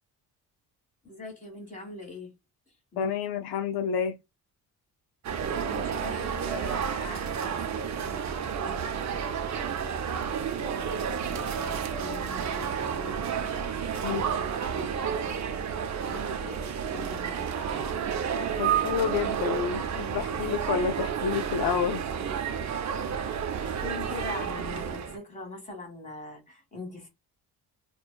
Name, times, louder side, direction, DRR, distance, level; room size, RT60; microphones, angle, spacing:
voice 1, 1.0-2.3 2.9-3.1 5.7-9.8 10.7-13.6 14.0-15.6 16.0-17.9 23.6-27.1, left 2 dB, 20° left, 1.5 m, -43 dB
voice 2, 3.0-4.2 14.0-14.2 18.6-22.0, left 7 dB, 70° left, 0.5 m, -29 dB
sound 1, 5.2-25.2, right 7 dB, 45° right, 0.6 m, -31 dB
2.5 x 2.3 x 2.2 m
cardioid pair, 90°, 40 cm